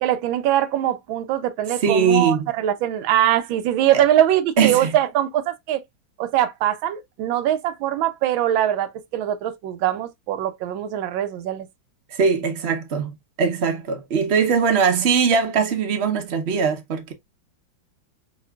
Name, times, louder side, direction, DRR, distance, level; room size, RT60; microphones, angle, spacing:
voice 1, 0.0-5.8 6.2-11.7, right 12 dB, 85° right, 1.4 m, -22 dB
voice 2, 1.8-2.5 3.9-4.0 4.6-4.9 12.2-13.1 13.4-17.1, right 6 dB, 65° right, 0.6 m, -20 dB
5.0 x 2.8 x 2.2 m
omnidirectional pair, 2.1 m